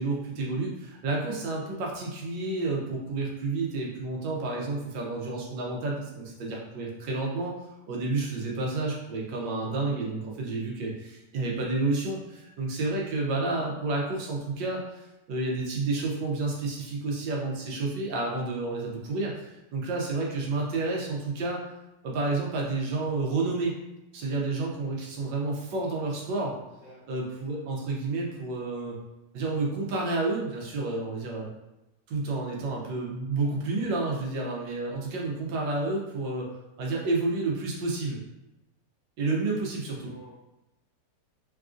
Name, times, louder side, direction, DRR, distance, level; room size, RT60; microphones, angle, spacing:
voice 1, 0.0-7.5 7.9-21.6 22.0-23.7 24.1-26.5 27.1-28.9 29.3-31.5 32.1-36.5 36.8-38.2 39.2-40.1, right 3 dB, 85° right, -2 dB, 1.4 m, -30 dB
voice 2, 26.8-27.2 39.9-40.3, right 1 dB, 55° left, -6 dB, 0.9 m, -51 dB
3.8 x 2.4 x 2.4 m, 0.98 s
omnidirectional pair, 1.9 m